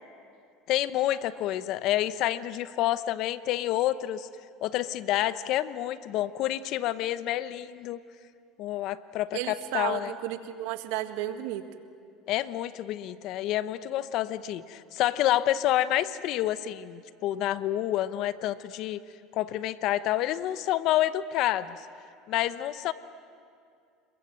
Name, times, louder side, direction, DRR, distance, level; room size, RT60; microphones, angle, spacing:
voice 1, 0.7-4.3 4.6-8.0 8.6-10.1 12.3-19.0 19.3-21.9 22.3-22.9, left 13 dB, 60° left, 14 dB, 0.9 m, -28 dB
voice 2, 9.3-11.6, right 13 dB, 75° right, 9 dB, 1.6 m, -33 dB
28.0 x 22.5 x 7.7 m, 2.3 s
supercardioid pair, 110°, 0 cm